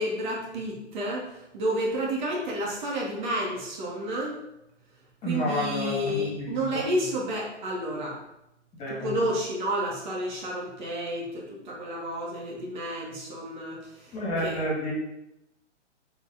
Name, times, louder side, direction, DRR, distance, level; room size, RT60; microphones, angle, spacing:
voice 1, 0.0-4.4 5.2-8.2 8.9-14.6, equal, 40° right, -3 dB, 2.4 m, -31 dB
voice 2, 5.2-6.8 8.8-9.1 14.1-14.9, equal, 15° left, -4 dB, 2.5 m, -30 dB
6.5 x 5.2 x 5.7 m, 0.87 s
hypercardioid pair, 140°, 36 cm